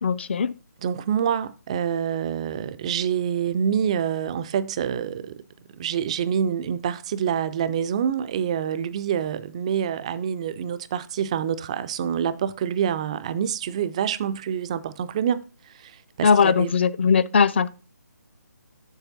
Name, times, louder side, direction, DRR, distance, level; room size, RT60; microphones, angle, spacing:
voice 1, 0.0-0.5 16.2-17.7, left 6 dB, 40° left, 0.5 m, -19 dB
voice 2, 0.8-5.4 5.8-16.7, right 8 dB, 20° right, 0.4 m, -26 dB
7.3 x 6.5 x 3.9 m
figure-of-eight pair, 150°, 10 cm